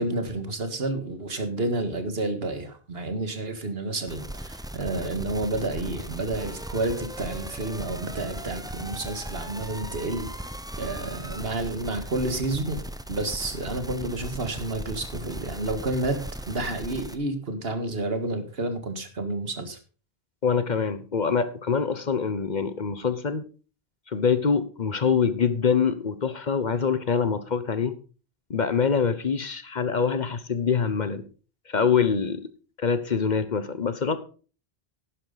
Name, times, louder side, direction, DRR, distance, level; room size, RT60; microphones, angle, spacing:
voice 1, 0.0-10.3 10.8-12.8 13.1-19.8, right 2 dB, 70° right, 8 dB, 1.8 m, -30 dB
sound 1, 4.1-17.2, right 1 dB, 5° right, 0.6 m, -38 dB
voice 2, 20.4-23.4 24.1-28.0 28.5-31.2 31.7-32.4 32.8-34.2, left 6 dB, 50° left, 13 dB, 0.9 m, -25 dB
11.0 x 10.5 x 4.0 m, 0.38 s
omnidirectional pair, 1.0 m